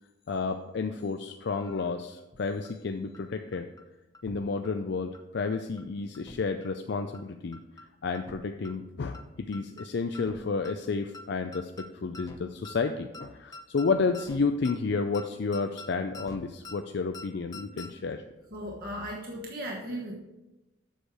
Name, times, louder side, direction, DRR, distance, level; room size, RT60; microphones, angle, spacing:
voice 1, 0.3-3.7 4.2-7.6 8.0-18.2, left 4 dB, 60° left, 6 dB, 0.4 m, -31 dB
sound 1, 2.3-2.4 2.6-2.7 3.1-3.2 3.5-3.8 4.1-4.4 4.6-4.7 5.1-5.2 5.5-5.8 6.1-6.4 6.6-6.7 7.1-7.2 7.5-7.8 8.1-8.4 8.6-8.7 9.1-9.2 9.5-9.9 10.1-10.4 10.6-10.7 11.1-11.2 11.5-11.9 12.1-12.4 12.6-12.7 13.1-13.2 13.5-13.9 14.1-14.4 14.6-14.7 15.1-15.2 15.5-15.9 16.1-16.4 16.6-16.8 17.1-17.3 17.5-17.9, left 2 dB, 20° left, 0.7 m, -45 dB
voice 2, 18.5-20.2, equal, 50° right, -2 dB, 1.2 m, -36 dB
7.9 x 6.4 x 4.9 m, 1.0 s
head